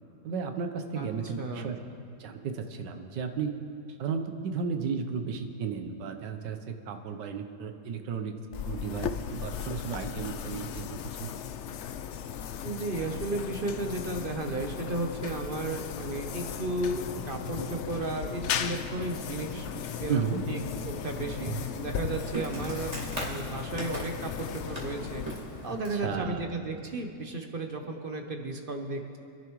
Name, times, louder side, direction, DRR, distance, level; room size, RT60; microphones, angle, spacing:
voice 1, 0.2-1.8 2.2-3.5 4.0-8.3 8.6-10.8 11.2-11.3 20.1-20.4 25.9-26.5, right 6 dB, 85° right, 6 dB, 1.5 m, -33 dB
voice 2, 1.4-1.7 12.6-25.2 25.6-29.2, right 2 dB, 40° right, 4 dB, 0.8 m, -34 dB
sound 1, 8.5-25.9, left 8 dB, 85° left, 0.6 m, -37 dB
Thunder / Rain, 11.6-11.7 14.6-26.4, equal, 70° left, 2.0 m, -47 dB
Insect, 20.0-26.1, right 1 dB, 20° right, 1.9 m, -40 dB
26.5 x 11.0 x 3.1 m, 2.5 s
omnidirectional pair, 1.8 m